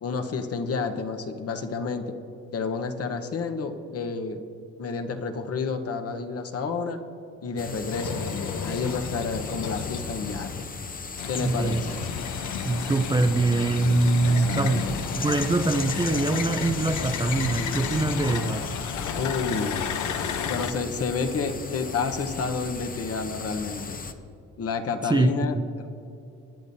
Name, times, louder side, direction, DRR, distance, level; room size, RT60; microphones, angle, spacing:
voice 1, 0.0-2.1 2.5-4.4 4.8-7.0 7.4-10.7 11.3-11.9 14.2-15.0 19.2-19.9 20.5-24.0 24.6-25.9, left 4 dB, 50° left, 7 dB, 1.0 m, -30 dB
sound 1, 7.6-24.1, left 4 dB, 30° left, 0.8 m, -37 dB
sound 2, 7.9-10.6 11.2-20.7, left 7 dB, 75° left, 0.9 m, -32 dB
voice 2, 11.4-11.9 12.6-18.7 25.0-25.6, right 2 dB, 15° right, 8 dB, 0.5 m, -24 dB
19.5 x 10.0 x 2.7 m, 2.6 s
cardioid pair, 90°, 30 cm